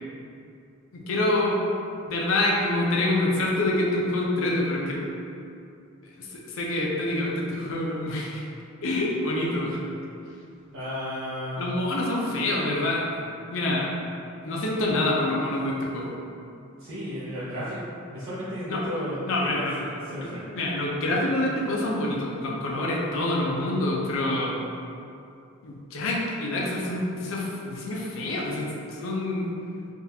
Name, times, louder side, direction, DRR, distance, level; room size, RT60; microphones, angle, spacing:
voice 1, 0.9-1.6 2.1-5.0 6.2-8.4 8.8-9.8 11.6-13.1 13.5-13.9 14.4-16.1 18.7-18.8 19.3-19.7 20.2-24.5 25.6-29.5, left 1 dB, 70° left, -3 dB, 0.5 m, -26 dB
voice 2, 10.7-11.6 16.8-17.8 18.1-20.5, equal, 65° right, -12 dB, 0.7 m, -33 dB
3.6 x 2.4 x 2.7 m, 2.6 s
head